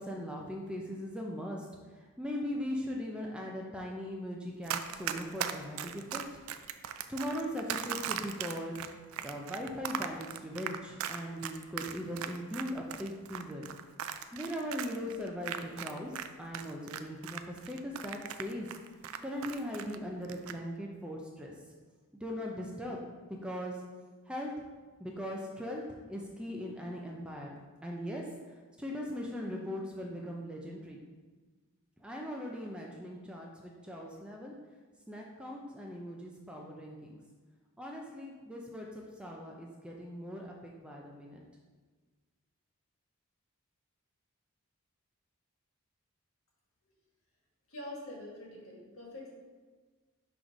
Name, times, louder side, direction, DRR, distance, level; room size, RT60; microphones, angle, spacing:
voice 1, 0.0-1.7 1.9-6.2 7.1-8.9 9.2-13.7 14.3-18.7 19.2-21.5 22.2-23.0 23.4-23.8 24.3-24.5 25.0-25.8 26.1-27.5 27.8-31.0 32.0-34.5 35.1-37.2 37.8-41.4, equal, 5° right, -1 dB, 0.5 m, -39 dB
Run, 4.7-16.3 16.5-20.0 20.2-20.6, right 9 dB, 70° right, 0.3 m, -38 dB
voice 2, 47.7-49.3, left 1 dB, 70° left, -3 dB, 1.6 m, -45 dB
6.1 x 3.1 x 5.1 m, 1.4 s
head